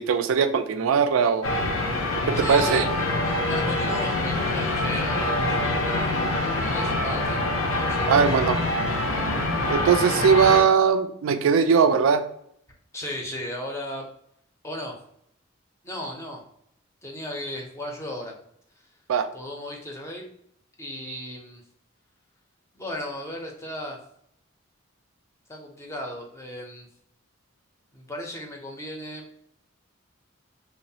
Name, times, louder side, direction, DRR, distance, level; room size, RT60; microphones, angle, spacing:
voice 1, 0.0-1.5 2.3-2.8 8.1-8.6 9.7-12.3 19.1-19.3 21.1-21.2, right 6 dB, 85° right, 9 dB, 0.3 m, -20 dB
sound 1, 1.4-10.6, left 2 dB, 80° left, 0.5 m, -25 dB
voice 2, 2.3-2.8 3.5-7.4 7.8-8.1 12.9-14.1 14.6-15.0 15.8-16.4 17.0-18.4 19.3-20.3 20.8-21.6 22.7-24.0 25.5-26.9 27.9-29.2, left 1 dB, 15° left, 0 dB, 0.5 m, -35 dB
3.0 x 2.0 x 2.7 m, 0.70 s
head